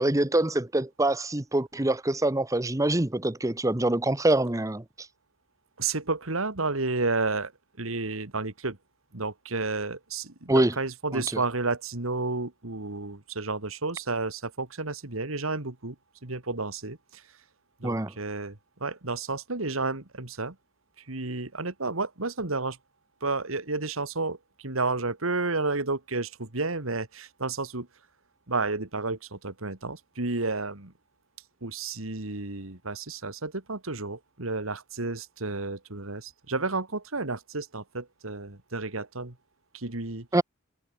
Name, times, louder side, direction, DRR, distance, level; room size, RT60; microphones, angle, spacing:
voice 1, 0.0-4.8 10.5-10.7 11.1-11.2 17.8-18.1 40.3-40.4, right 1 dB, 15° right, 0.9 m, -25 dB
voice 2, 5.8-7.5 7.8-8.8 9.1-16.0 16.2-17.2 17.8-20.6 21.0-22.8 23.2-27.9 28.5-30.9 31.6-39.4 39.7-40.3, right 3 dB, 90° right, 2.4 m, -31 dB
head